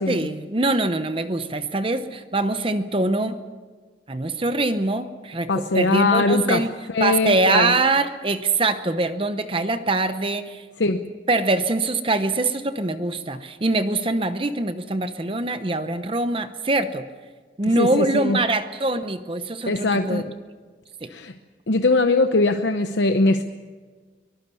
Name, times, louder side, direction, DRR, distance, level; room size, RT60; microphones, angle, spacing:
voice 1, 0.1-3.4 4.1-6.7 7.0-10.6 11.3-17.1 17.6-20.3 21.0-21.1, right 2 dB, 30° right, 10 dB, 0.8 m, -23 dB
voice 2, 5.5-7.7 10.8-11.0 17.7-18.4 19.7-20.2 21.1-21.3 21.7-23.4, left 2 dB, 85° left, 7 dB, 0.9 m, -21 dB
24.0 x 19.5 x 7.1 m, 1.5 s
head